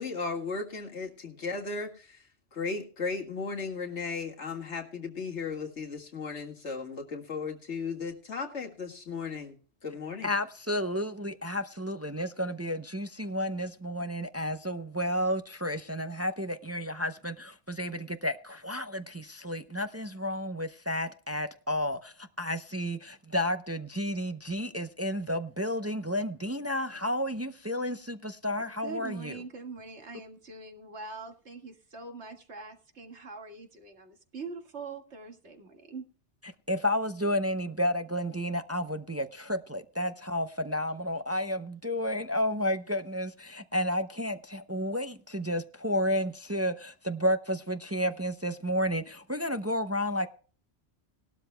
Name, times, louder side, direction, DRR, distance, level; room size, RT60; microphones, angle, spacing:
voice 1, 0.0-2.2 2.5-9.6 9.8-10.3, left 4 dB, 85° left, 2.2 m, -36 dB
voice 2, 10.2-29.4 36.7-50.3, equal, 20° right, 0.4 m, -31 dB
voice 3, 28.6-36.1, right 4 dB, 80° right, 2.2 m, -43 dB
19.0 x 12.5 x 2.2 m
omnidirectional pair, 1.1 m